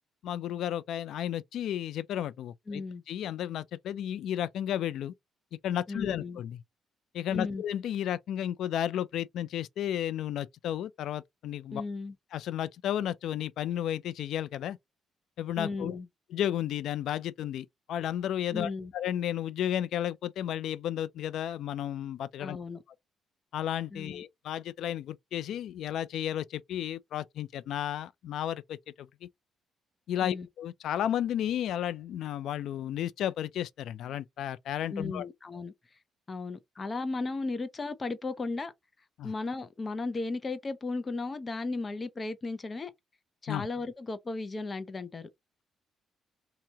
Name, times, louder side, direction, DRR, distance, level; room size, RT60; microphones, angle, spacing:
voice 1, 0.2-5.1 5.6-6.6 7.1-11.8 12.3-14.8 15.4-15.9 16.3-22.6 23.5-29.1 30.1-35.3 39.2-39.3 43.5-43.7, left 11 dB, 75° left, 0.3 m, -33 dB
voice 2, 2.7-3.0 5.9-6.4 7.3-7.6 11.7-12.1 15.6-16.1 18.5-18.9 22.4-22.8 23.9-24.2 30.2-30.5 34.9-35.7 36.3-38.7 39.2-42.9 43.4-45.3, left 3 dB, 30° left, 0.7 m, -35 dB
2.8 x 2.8 x 3.4 m
cardioid pair, 90°, 0 cm